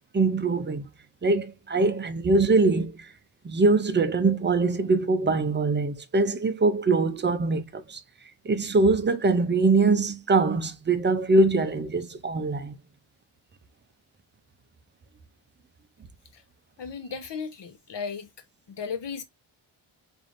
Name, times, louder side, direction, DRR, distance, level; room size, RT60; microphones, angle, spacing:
voice 1, 0.1-0.8 1.2-3.1 3.4-8.0 8.4-12.8, right 3 dB, 25° right, 0.4 m, -23 dB
voice 2, 16.8-18.3 18.7-19.2, left 6 dB, 55° left, 0.9 m, -35 dB
4.9 x 2.6 x 2.5 m
wide cardioid pair, 160°, 49 cm